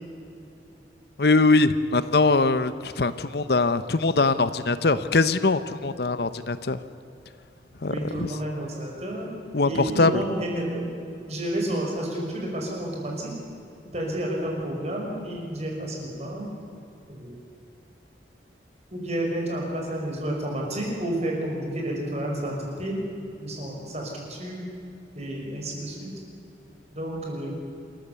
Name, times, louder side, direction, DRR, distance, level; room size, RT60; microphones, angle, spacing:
voice 1, 1.2-6.8 7.8-8.3 9.5-10.2, left 3 dB, 60° left, 13 dB, 0.8 m, -22 dB
voice 2, 7.9-9.3 9.6-10.9 11.3-13.3 13.9-16.5 17.1-17.4 18.9-23.0 23.4-24.7 25.1-26.1 26.9-27.5, right 1 dB, 35° right, -1 dB, 5.7 m, -30 dB
27.5 x 14.0 x 8.3 m, 2.7 s
head